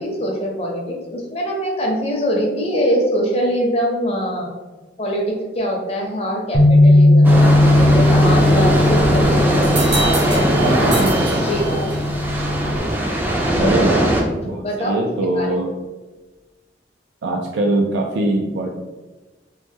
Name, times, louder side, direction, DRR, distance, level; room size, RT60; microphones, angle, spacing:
voice 1, 0.0-4.5 5.0-7.5 7.7-11.1 11.4-11.9 14.5-15.1 15.3-15.5, equal, 35° left, -1 dB, 0.6 m, -23 dB
Bass guitar, 6.5-12.8, left 1 dB, 70° left, 0.8 m, -16 dB
sound 1, 7.2-14.2, right 1 dB, 10° right, 0.4 m, -19 dB
sound 2, 9.6-12.2, right 3 dB, 65° right, 0.9 m, -28 dB
voice 2, 10.5-11.4 13.5-14.0 14.4-15.7 17.2-18.7, right 2 dB, 85° right, 1 dB, 0.3 m, -22 dB
3.1 x 2.0 x 3.4 m, 1.2 s
head